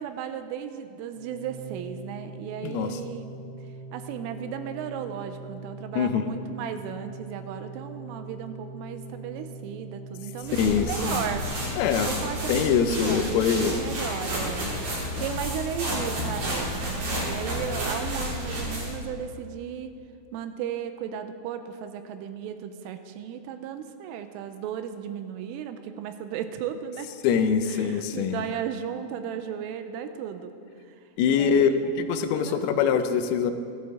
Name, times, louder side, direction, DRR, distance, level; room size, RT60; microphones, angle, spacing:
voice 1, 0.0-3.3 3.9-11.5 12.0-14.7 15.2-19.9 20.3-27.1 27.6-30.6 30.8-31.9 32.3-32.9, right 9 dB, 85° right, 9 dB, 3.1 m, -35 dB
Organ, 1.1-12.0, right 2 dB, 45° left, 2.2 m, -42 dB
voice 2, 2.6-3.0 5.9-6.3 10.5-11.2 11.8-12.2 12.5-13.7 15.1-15.2 27.2-28.4 31.2-31.7 32.0-33.5, left 7 dB, 85° left, 8 dB, 3.4 m, -24 dB
sound 1, 10.4-19.0, equal, 45° right, 4.7 m, -31 dB
14.5 x 14.0 x 3.6 m, 2.3 s
omnidirectional pair, 5.9 m